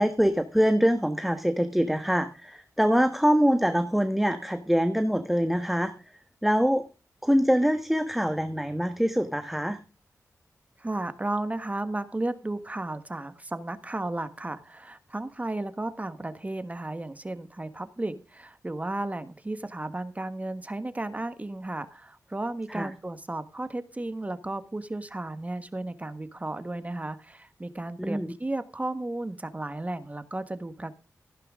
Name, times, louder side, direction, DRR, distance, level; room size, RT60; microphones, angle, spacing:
voice 1, 0.0-5.9 6.4-6.9 7.2-9.8 22.7-22.9 28.0-28.3, equal, 5° right, 9 dB, 1.4 m, -24 dB
voice 2, 10.8-31.0, right 2 dB, 25° right, 11 dB, 1.4 m, -34 dB
16.0 x 9.8 x 3.7 m, 0.32 s
cardioid pair, 65°, 6 cm